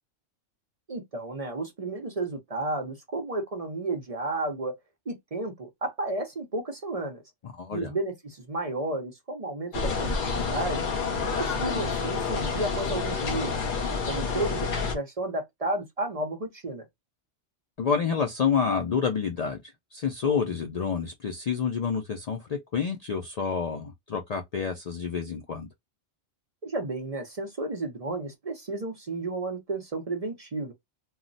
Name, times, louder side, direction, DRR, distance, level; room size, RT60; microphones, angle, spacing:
voice 1, 0.9-4.8 5.1-7.2 7.7-10.8 11.4-13.5 14.1-16.8 26.6-30.7, right 2 dB, 40° right, 0.6 m, -32 dB
voice 2, 7.4-7.9 17.8-25.7, left 6 dB, 90° left, 0.3 m, -28 dB
sound 1, 9.7-14.9, left 4 dB, 50° left, 0.9 m, -29 dB
2.3 x 2.1 x 3.8 m
omnidirectional pair, 1.2 m